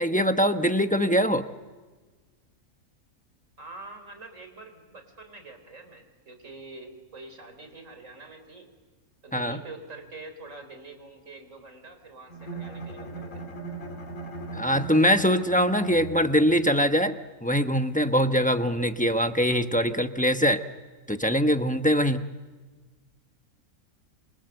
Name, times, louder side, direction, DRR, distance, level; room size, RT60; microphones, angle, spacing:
voice 1, 0.0-1.4 9.3-9.6 14.5-20.6 21.1-22.3, equal, 5° left, 8 dB, 0.8 m, -23 dB
voice 2, 3.6-8.7 9.2-13.4, right 3 dB, 55° right, 7 dB, 4.4 m, -45 dB
Bowed string instrument, 12.3-16.6, right 3 dB, 55° left, 2.9 m, -38 dB
27.5 x 25.5 x 7.9 m, 1.3 s
omnidirectional pair, 1.6 m